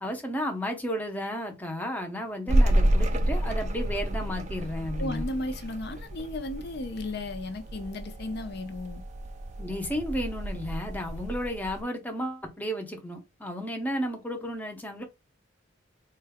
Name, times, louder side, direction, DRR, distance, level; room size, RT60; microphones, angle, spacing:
voice 1, 0.0-5.3 9.6-15.0, equal, 10° left, 0.6 m, -33 dB
sound 1, 2.5-11.8, right 1 dB, 35° right, 0.3 m, -29 dB
voice 2, 5.0-9.0, left 2 dB, 50° left, 0.6 m, -35 dB
3.8 x 2.3 x 3.4 m
head